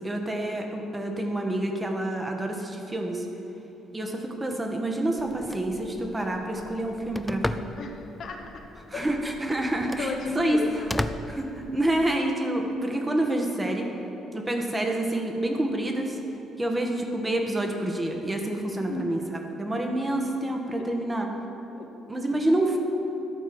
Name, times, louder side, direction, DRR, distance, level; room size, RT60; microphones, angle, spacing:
voice 1, 0.0-3.3 3.9-7.6 8.9-10.6 11.3-13.9 14.3-16.2 16.6-21.3 22.1-22.8, right 1 dB, 20° right, 2 dB, 1.3 m, -28 dB
Telephone, 5.2-12.2, left 1 dB, 10° left, 0.4 m, -37 dB
voice 2, 7.8-8.6 8.9-9.0 10.0-11.2 14.3-14.6 16.6-16.7 18.9-19.1 21.7-21.9, left 3 dB, 55° left, 2 dB, 0.9 m, -34 dB
12.0 x 4.6 x 6.0 m, 3.0 s
figure-of-eight pair, 45°, 0 cm